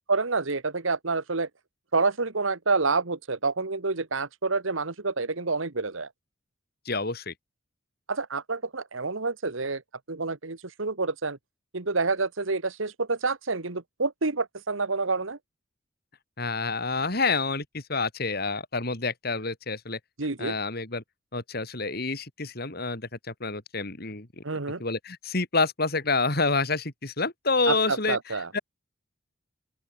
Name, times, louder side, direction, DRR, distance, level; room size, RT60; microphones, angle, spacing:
voice 1, 0.1-1.5 1.9-6.1 8.1-9.8 10.1-11.4 11.7-15.4 20.2-20.6 24.4-24.8 27.7-28.5, right 3 dB, 80° right, 1.6 m, -28 dB
voice 2, 6.8-7.3 16.4-20.0 20.4-21.0 21.3-24.4 24.8-28.2 28.5-28.6, left 3 dB, 50° left, 3.2 m, -28 dB
open air
head